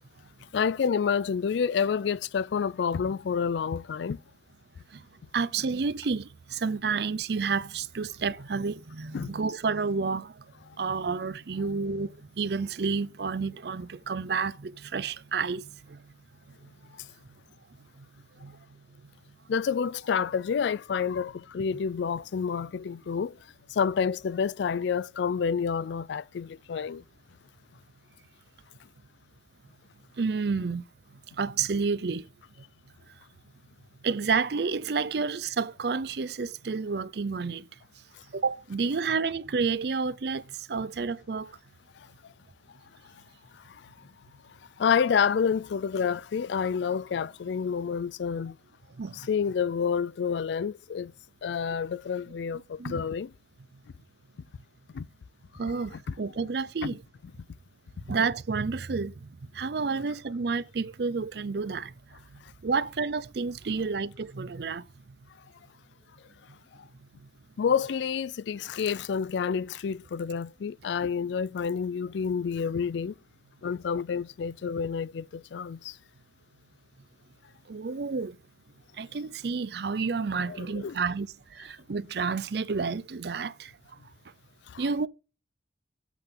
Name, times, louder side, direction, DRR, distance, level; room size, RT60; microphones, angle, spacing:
voice 1, 0.5-4.2 9.1-9.4 16.9-17.1 19.5-23.4 23.7-27.0 38.1-38.2 42.0-42.3 43.0-43.2 43.5-44.1 44.8-48.6 49.1-51.1 51.4-53.3 54.9-55.1 55.9-56.0 56.8-56.9 62.4-62.5 67.6-73.2 73.6-76.0 80.5-81.0 84.7-84.8, left 6 dB, 70° left, 0.3 m, -29 dB
voice 2, 5.3-10.4 10.8-16.0 18.0-18.1 18.4-18.6 30.2-30.8 31.4-32.3 34.0-37.7 38.3-41.5 49.0-49.2 52.8-53.0 55.6-57.0 58.1-59.3 59.5-61.9 62.3-64.8 77.7-78.4 79.0-83.7 84.8-85.1, right 4 dB, 60° right, 0.5 m, -30 dB
8.3 x 3.8 x 6.8 m
head